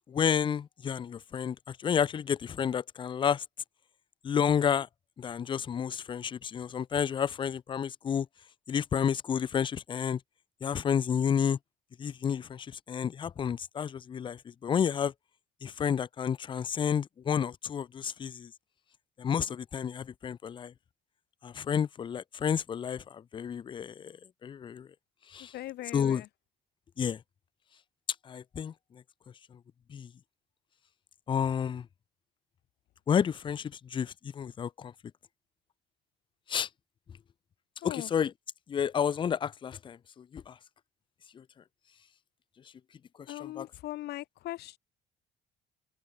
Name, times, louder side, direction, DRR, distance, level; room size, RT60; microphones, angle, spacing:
voice 1, 0.1-3.4 4.2-4.9 5.2-8.3 8.7-10.2 10.6-11.6 12.0-15.1 15.6-18.5 19.2-20.7 21.4-24.9 25.3-25.5 25.9-26.2 27.0-27.2 28.2-29.0 29.5-29.6 29.9-30.1 31.3-31.9 33.1-34.9 36.5-36.7 37.8-38.3 38.7-40.6 41.3-41.4 43.4-43.6, left 8 dB, 30° left, 0.4 m, -30 dB
voice 2, 25.4-26.3 37.8-38.1 43.3-44.8, left 15 dB, 75° left, 2.3 m, -40 dB
open air
cardioid pair, 110°, 17 cm